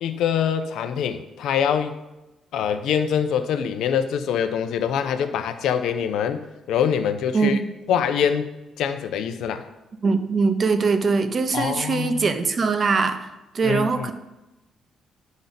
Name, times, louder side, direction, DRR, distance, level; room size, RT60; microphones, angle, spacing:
voice 1, 0.0-1.9 2.5-7.6 7.9-9.7 11.5-12.3 13.6-14.1, left 8 dB, 80° left, 9 dB, 0.6 m, -24 dB
voice 2, 10.0-13.3 13.5-14.1, right 4 dB, 45° right, 8 dB, 0.8 m, -22 dB
10.0 x 5.3 x 4.1 m, 0.99 s
cardioid pair, 90°, 0 cm